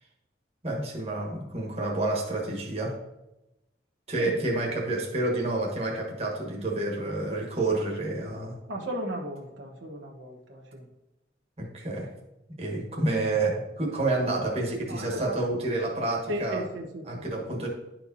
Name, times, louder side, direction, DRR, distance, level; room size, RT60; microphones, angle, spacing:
voice 1, 0.6-3.0 4.1-8.6 11.6-12.1 12.6-16.6 17.1-17.7, right 2 dB, 35° right, -1 dB, 1.4 m, -29 dB
voice 2, 8.7-10.9 12.8-12.9 14.9-15.4 16.3-17.3 17.6-17.7, equal, 85° right, -1 dB, 1.1 m, -35 dB
11.0 x 4.5 x 2.8 m, 0.95 s
head